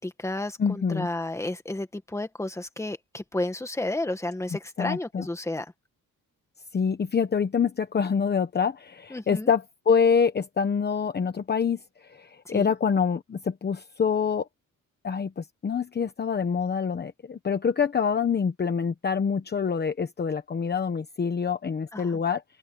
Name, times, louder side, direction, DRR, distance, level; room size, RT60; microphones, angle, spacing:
voice 1, 0.0-5.7 9.1-9.5 12.5-12.7 21.9-22.2, left 2 dB, 10° left, 1.9 m, -32 dB
voice 2, 0.6-1.1 4.8-5.2 6.7-14.5 15.0-22.4, left 6 dB, 30° left, 1.1 m, -26 dB
open air
wide cardioid pair, 170°, 32 cm